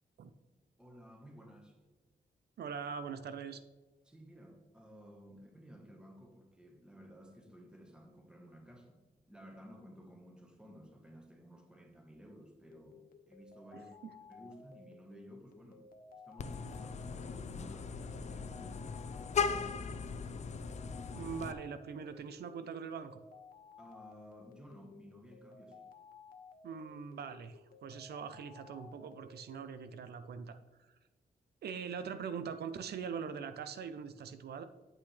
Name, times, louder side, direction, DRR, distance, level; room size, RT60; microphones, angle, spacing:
voice 1, 0.8-1.8 4.0-14.0 14.3-15.9 16.2-19.1 19.5-20.1 23.8-25.9, equal, 5° right, 2 dB, 1.3 m, -55 dB
voice 2, 2.6-3.6 13.7-14.1 19.9-20.0 21.1-23.2 26.6-31.0 31.6-34.6, right 6 dB, 90° right, 10 dB, 0.6 m, -42 dB
sound 1, 12.7-30.0, left 4 dB, 60° left, 0.9 m, -57 dB
Vehicle horn car horn honking, 16.4-21.5, left 6 dB, 45° left, 0.5 m, -38 dB
8.6 x 8.3 x 3.3 m, 1.2 s
wide cardioid pair, 175°, 16 cm